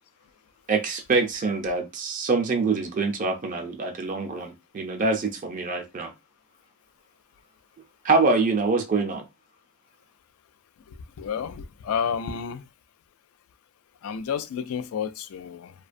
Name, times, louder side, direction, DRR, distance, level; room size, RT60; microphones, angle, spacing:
voice 1, 0.7-6.1 8.0-9.2, right 3 dB, 40° right, 0.4 m, -25 dB
voice 2, 11.2-12.6 14.0-15.7, left 7 dB, 85° left, 0.3 m, -30 dB
2.4 x 2.2 x 2.5 m
head